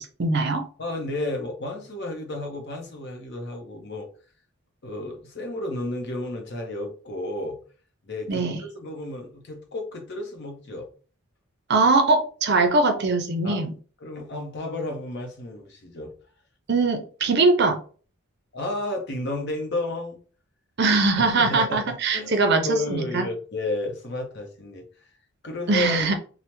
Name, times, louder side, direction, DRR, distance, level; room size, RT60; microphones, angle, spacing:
voice 1, 0.0-0.6 8.3-8.6 11.7-13.7 16.7-17.8 20.8-23.2 25.7-26.1, right 3 dB, 50° right, 5 dB, 0.5 m, -21 dB
voice 2, 0.8-4.1 4.8-7.6 8.1-10.9 13.4-13.6 14.0-16.1 18.5-20.2 21.4-24.8 25.4-26.1, left 2 dB, 50° left, 3 dB, 0.7 m, -32 dB
3.3 x 2.0 x 2.9 m, 0.39 s
head